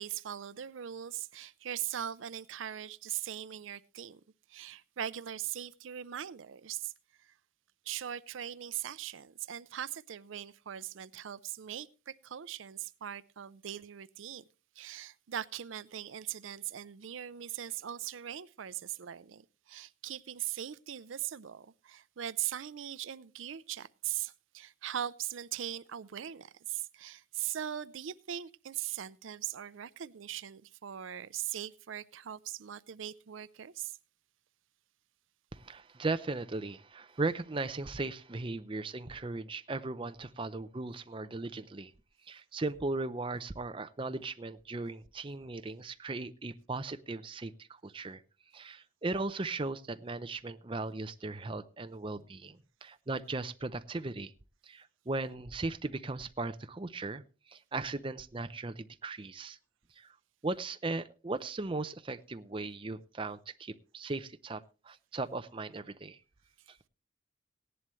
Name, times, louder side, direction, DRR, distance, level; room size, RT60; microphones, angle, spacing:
voice 1, 0.0-4.2 4.5-6.9 7.2-7.3 7.9-14.4 14.8-34.0, right 11 dB, 80° right, 0.5 m, -40 dB
voice 2, 35.5-41.9 42.2-48.2 48.5-54.3 54.6-59.6 60.0-60.1 60.4-66.2 66.7-66.8, right 3 dB, 25° right, 0.5 m, -37 dB
17.0 x 11.0 x 3.1 m
head